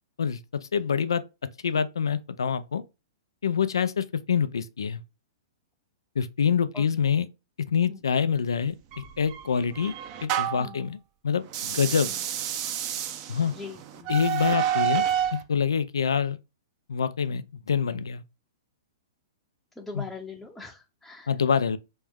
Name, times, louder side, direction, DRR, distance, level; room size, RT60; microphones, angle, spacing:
voice 1, 0.2-1.2 1.6-2.8 3.4-5.0 6.2-7.3 7.7-9.9 10.2-11.0 11.2-12.1 13.3-13.5 14.1-15.0 15.3-16.4 16.9-18.2 19.9-20.1 21.3-21.8, left 6 dB, 85° left, 0.4 m, -26 dB
sound 1, 8.9-10.8 11.5-15.4, right 10 dB, 40° right, 0.6 m, -29 dB
voice 2, 13.5-14.1 19.8-21.3, left 3 dB, 5° left, 0.7 m, -41 dB
3.5 x 3.1 x 3.5 m
hypercardioid pair, 125°, 2 cm